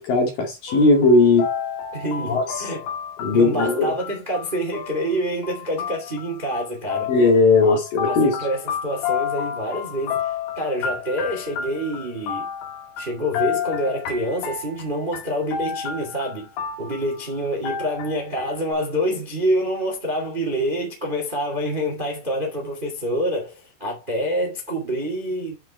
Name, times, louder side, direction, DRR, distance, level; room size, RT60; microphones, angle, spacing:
voice 1, 0.0-1.5 2.3-2.4 3.2-3.9 7.1-8.4, left 3 dB, 55° left, 3.3 m, -17 dB
sound 1, 0.7-17.3 17.6-18.7, left 8 dB, 75° left, 4.5 m, -31 dB
voice 2, 1.9-2.8 3.3-7.1 7.6-7.8 8.0-12.5 13.0-16.5 16.8-25.6, equal, 25° right, 1.0 m, -27 dB
9.3 x 5.3 x 4.4 m
omnidirectional pair, 5.7 m